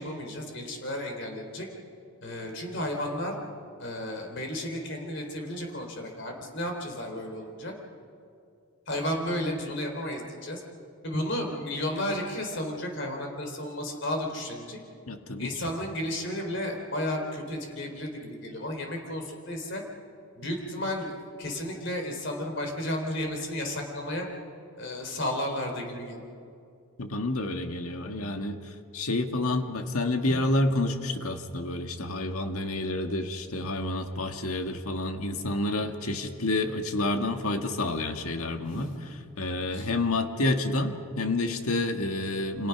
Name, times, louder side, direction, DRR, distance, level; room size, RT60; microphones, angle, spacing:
voice 1, 0.0-1.7 2.2-3.4 3.8-7.7 8.9-10.6 11.0-14.8 15.4-19.8 20.4-24.3 24.8-26.2 30.2-30.4 38.6-39.0 39.7-39.9, left 1 dB, 55° left, 2 dB, 3.8 m, -33 dB
voice 2, 15.1-15.7 27.0-28.6 28.9-38.9 39.4-42.7, left 2 dB, 80° left, 6 dB, 1.8 m, -29 dB
29.5 x 27.0 x 6.0 m, 2.4 s
head